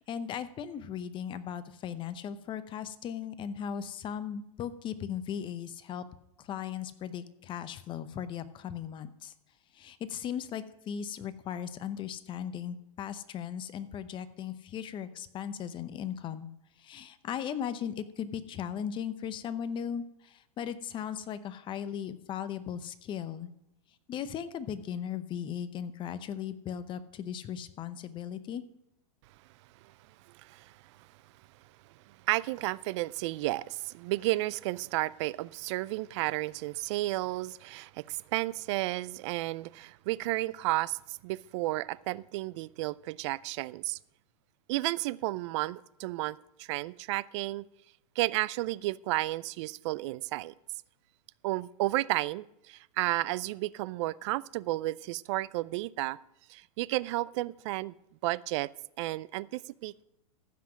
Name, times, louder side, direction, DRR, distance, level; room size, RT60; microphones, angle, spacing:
voice 1, 0.0-6.0 6.4-9.3 9.7-16.5 16.8-23.5 24.1-28.6, left 8 dB, 25° left, 0.8 m, -37 dB
voice 2, 30.3-30.8 32.1-44.0 44.7-47.7 48.2-50.5 51.4-56.2 56.5-57.9 58.2-58.7 59.0-60.1, right 18 dB, 50° right, 0.4 m, -32 dB
14.5 x 5.9 x 6.2 m
hypercardioid pair, 130°, 19 cm